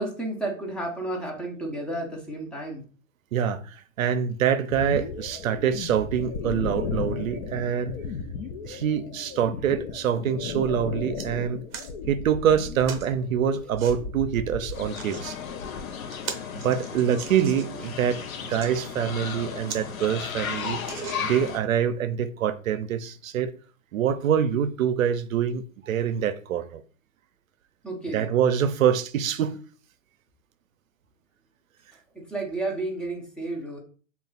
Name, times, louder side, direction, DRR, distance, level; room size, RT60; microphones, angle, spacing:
voice 1, 0.0-2.8 27.8-28.3 32.1-33.8, right 2 dB, ahead, 0.5 m, -32 dB
voice 2, 3.3-8.0 8.6-11.6 12.1-15.4 16.5-23.5 23.9-26.8 28.1-29.6, right 8 dB, 80° right, 0.6 m, -25 dB
sound 1, 4.7-15.9, left 5 dB, 50° left, 0.6 m, -35 dB
sound 2, 10.5-10.6 10.9-11.3 11.7-11.9 12.8-13.1 13.8-14.0 14.7-15.2 15.7-15.8 16.1-17.8 18.4-18.7 19.3-19.4 19.7-19.8 20.2-20.3 20.8-21.5 22.2-22.3, right 7 dB, 45° right, 0.7 m, -39 dB
sound 3, 14.7-21.6, left 7 dB, 85° left, 0.7 m, -35 dB
3.2 x 2.4 x 3.8 m
hypercardioid pair, 130°, 40 cm